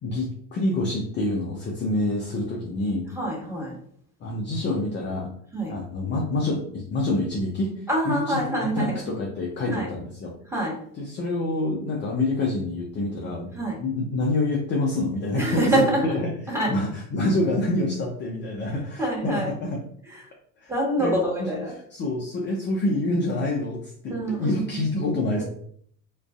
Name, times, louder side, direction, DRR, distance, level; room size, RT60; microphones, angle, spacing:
voice 1, 0.0-3.1 4.2-5.3 5.7-8.4 8.7-10.3 10.9-13.5 13.8-19.8 20.6-20.7 21.0-21.5 21.9-25.4, left 2 dB, 25° left, -1 dB, 0.4 m, -27 dB
voice 2, 3.2-3.7 5.5-5.7 7.9-9.1 9.7-9.9 10.5-10.7 13.6-13.8 15.4-16.0 16.5-16.7 19.0-19.5 20.7-21.7 24.1-24.8 25.4-25.5, right 1 dB, 5° right, -4 dB, 1.0 m, -25 dB
2.4 x 2.3 x 2.3 m, 0.63 s
hypercardioid pair, 65°, 46 cm